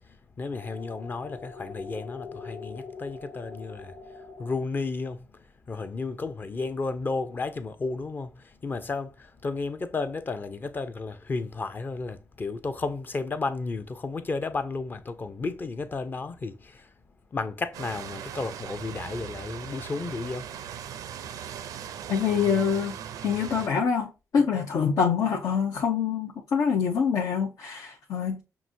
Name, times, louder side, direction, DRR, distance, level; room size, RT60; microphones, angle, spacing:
voice 1, 0.1-16.9 17.3-20.5 21.5-21.7, left 3 dB, 35° left, 0.6 m, -33 dB
sound 1, 0.5-4.5, left 4 dB, 50° left, 1.2 m, -43 dB
sound 2, 17.7-23.7, right 9 dB, 85° right, 0.5 m, -39 dB
voice 2, 22.1-23.0 23.2-28.4, left 6 dB, 75° left, 0.9 m, -25 dB
5.9 x 2.6 x 2.7 m
cardioid pair, 95°, 6 cm